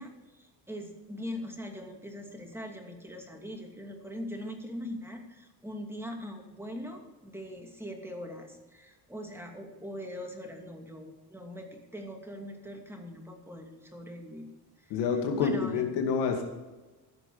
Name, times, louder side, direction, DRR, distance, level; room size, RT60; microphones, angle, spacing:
voice 1, 0.0-14.5 14.8-14.9 15.3-15.8, equal, 5° right, 2 dB, 2.6 m, -41 dB
voice 2, 14.9-16.4, left 6 dB, 90° left, 3 dB, 2.4 m, -28 dB
14.5 x 6.0 x 7.2 m, 1.2 s
cardioid pair, 110°, 41 cm